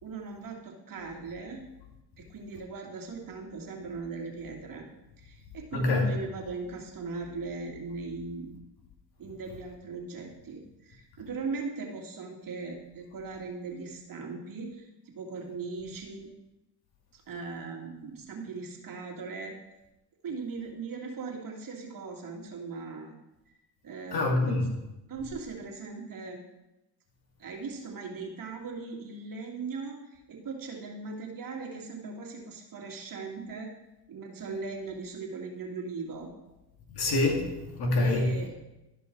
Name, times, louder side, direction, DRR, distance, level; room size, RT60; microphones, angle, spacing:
voice 1, 0.0-1.6 2.2-4.9 5.2-8.6 9.2-16.3 17.1-19.6 20.2-23.1 23.5-23.6 23.8-24.7 25.1-26.4 27.4-33.7 34.1-36.3 38.0-38.5, right 4 dB, 45° right, 2.3 m, -39 dB
voice 2, 5.7-6.1 24.1-24.7 37.0-38.4, left 2 dB, 55° left, 2.4 m, -26 dB
12.5 x 5.3 x 4.6 m
supercardioid pair, 80°, 46 cm